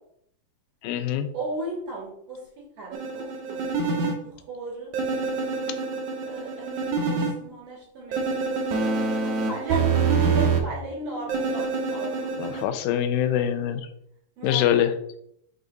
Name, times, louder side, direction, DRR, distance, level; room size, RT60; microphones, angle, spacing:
voice 1, 0.8-1.3 12.4-13.9 14.4-14.9, left 10 dB, 80° left, 9 dB, 2.3 m, -24 dB
voice 2, 1.3-2.4 2.8-4.0 4.3-4.9 6.3-8.8 9.1-9.9 10.2-12.3 14.4-14.7, right 3 dB, 45° right, -4 dB, 3.5 m, -35 dB
sound 1, 2.9-4.1 4.9-7.3 8.1-10.6 11.3-12.6, right 4 dB, 85° right, 1.7 m, -26 dB
6.5 x 5.0 x 3.9 m, 0.71 s
omnidirectional pair, 4.7 m